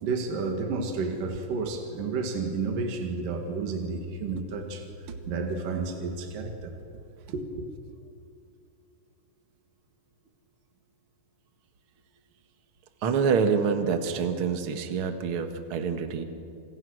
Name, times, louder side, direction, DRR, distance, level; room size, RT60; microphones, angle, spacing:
voice 1, 0.0-4.9 5.3-6.7 7.3-7.7, right 4 dB, 60° right, 3 dB, 3.6 m, -31 dB
voice 2, 13.0-16.2, right 6 dB, 45° right, 6 dB, 1.9 m, -26 dB
29.5 x 28.0 x 6.4 m, 2.5 s
omnidirectional pair, 4.4 m